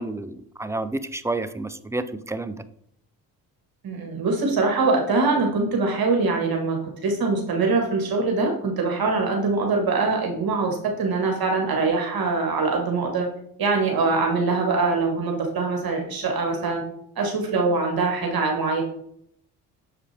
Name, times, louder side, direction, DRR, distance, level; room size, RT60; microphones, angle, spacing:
voice 1, 0.0-2.6, right 2 dB, 5° right, 13 dB, 0.5 m, -30 dB
voice 2, 3.8-13.3 13.6-16.8 17.2-18.8, right 3 dB, 50° right, 1 dB, 1.7 m, -23 dB
7.0 x 4.9 x 3.4 m, 0.70 s
supercardioid pair, 60°, 45 cm